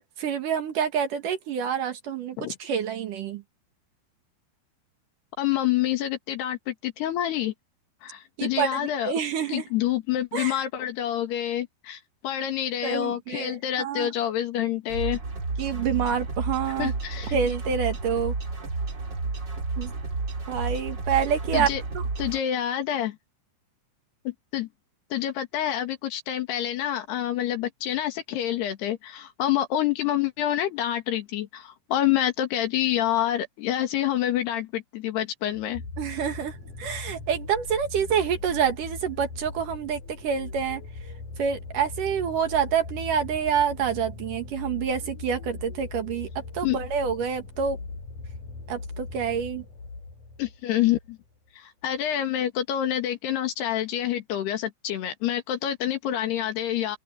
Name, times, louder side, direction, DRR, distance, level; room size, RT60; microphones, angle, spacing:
voice 1, 0.0-3.4 8.4-9.6 10.3-10.5 12.8-14.1 15.6-16.9 17.3-18.4 19.8-19.9 20.5-21.7 21.9-22.1 36.0-40.8 41.4-46.3 46.5-47.8 48.7-49.6, right 7 dB, 60° right, 2.9 m, -27 dB
voice 2, 5.4-7.5 8.0-9.1 9.5-15.2 16.8-17.4 21.5-21.8 22.2-23.2 24.3-24.7 25.1-35.8 46.6-46.8 50.4-51.2 51.6-57.0, left 11 dB, 85° left, 4.0 m, -27 dB
sound 1, 14.9-22.4, right 3 dB, 30° right, 3.1 m, -31 dB
sound 2, 35.5-51.1 51.9-52.0, left 3 dB, 50° left, 7.7 m, -39 dB
open air
omnidirectional pair, 4.7 m